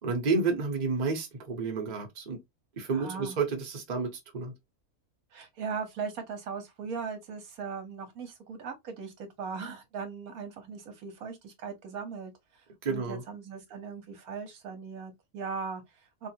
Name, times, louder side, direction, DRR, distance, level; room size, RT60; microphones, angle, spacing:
voice 1, 0.0-2.4 2.8-4.5 12.8-13.2, right 4 dB, 35° right, 0.9 m, -30 dB
voice 2, 2.9-3.4 5.3-16.3, right 5 dB, 75° right, 1.2 m, -39 dB
3.2 x 2.4 x 2.7 m
omnidirectional pair, 1.5 m